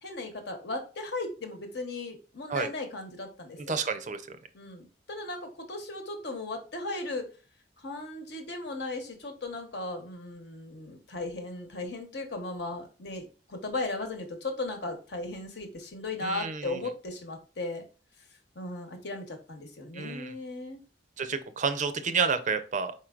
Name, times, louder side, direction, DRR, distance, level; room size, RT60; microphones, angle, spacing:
voice 1, 0.0-3.8 4.5-7.3 7.8-17.8 18.5-20.8, left 2 dB, 65° left, 5 dB, 1.0 m, -37 dB
voice 2, 3.6-4.4 16.2-16.8 19.9-20.3 21.2-22.9, right 5 dB, 45° right, 9 dB, 0.5 m, -30 dB
4.5 x 4.4 x 2.4 m, 0.35 s
head